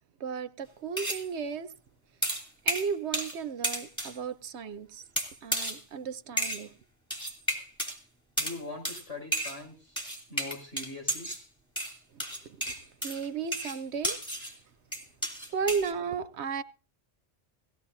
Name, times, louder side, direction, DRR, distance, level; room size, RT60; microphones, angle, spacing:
voice 1, 0.2-1.7 2.6-5.0 5.4-6.7 12.1-12.7 13.0-14.2 15.5-16.6, right 6 dB, 70° right, 1.1 m, -34 dB
sound 1, 1.0-1.3 2.2-3.4 3.6-4.2 5.2-5.8 6.4-6.7 7.1-8.0 8.4-8.6 8.9-9.0 9.3-9.6 10.0-11.4 11.8-14.6 14.9-15.9, right 1 dB, 5° left, 3.0 m, -32 dB
voice 2, 8.4-10.0 10.3-11.3, left 2 dB, 85° left, 6.7 m, -42 dB
18.0 x 16.5 x 2.7 m
omnidirectional pair, 1.2 m